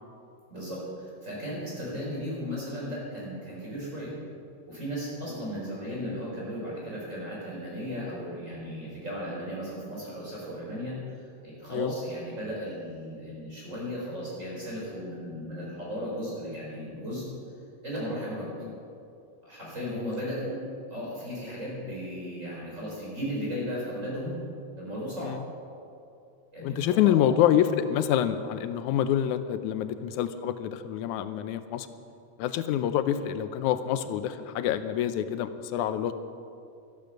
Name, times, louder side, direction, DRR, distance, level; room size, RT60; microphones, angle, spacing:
voice 1, 0.5-4.1 4.7-10.9 11.4-17.2 17.8-18.5 19.4-20.6 20.9-24.4 24.8-25.3 26.5-27.3, equal, 25° right, -5 dB, 4.6 m, -35 dB
voice 2, 26.6-31.9 32.4-36.1, left 10 dB, 90° left, 11 dB, 2.1 m, -27 dB
12.0 x 12.0 x 6.6 m, 2.5 s
omnidirectional pair, 3.4 m